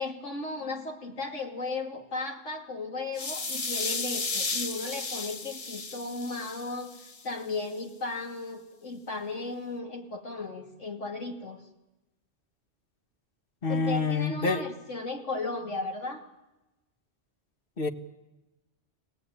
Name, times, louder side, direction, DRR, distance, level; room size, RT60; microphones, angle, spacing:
voice 1, 0.0-6.9 7.2-11.6 13.7-16.2, left 3 dB, 80° left, 2 dB, 3.0 m, -35 dB
sound 1, 3.1-7.2, left 3 dB, 30° left, 1.0 m, -34 dB
voice 2, 13.6-14.6 17.8-17.9, left 4 dB, 50° left, 6 dB, 1.7 m, -27 dB
25.5 x 18.0 x 9.3 m, 1.0 s
omnidirectional pair, 1.2 m